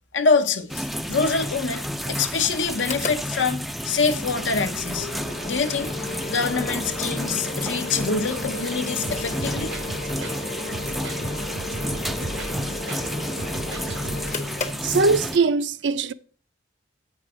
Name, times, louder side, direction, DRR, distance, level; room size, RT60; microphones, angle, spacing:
voice 1, 0.1-5.1 5.5-5.9 6.3-9.7, left 4 dB, 85° left, 0.9 m, -25 dB
sound 1, 0.7-15.4, equal, ahead, 0.3 m, -31 dB
Mechanical fan, 2.7-15.5, left 2 dB, 40° left, 0.8 m, -35 dB
sound 2, 9.0-10.4 10.7-13.1 13.4-14.4, right 2 dB, 90° right, 1.5 m, -36 dB
voice 2, 14.8-16.1, right 4 dB, 70° right, 0.5 m, -21 dB
8.6 x 4.7 x 6.0 m
head